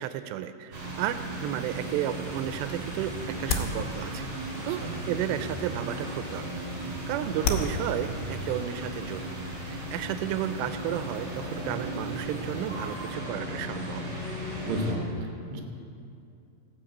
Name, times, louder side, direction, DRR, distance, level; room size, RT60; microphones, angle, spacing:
voice 1, 0.0-4.3 4.6-6.5 6.9-9.3 9.6-14.0, right 11 dB, 90° right, 11 dB, 2.8 m, -33 dB
sound 1, 0.7-14.9, right 1 dB, 30° right, 3.3 m, -36 dB
sound 2, 2.5-10.2, left 4 dB, 85° left, 3.2 m, -37 dB
voice 2, 4.5-4.9 14.6-15.6, right 1 dB, 55° right, 2 dB, 2.2 m, -33 dB
17.5 x 6.5 x 7.9 m, 2.6 s
omnidirectional pair, 4.9 m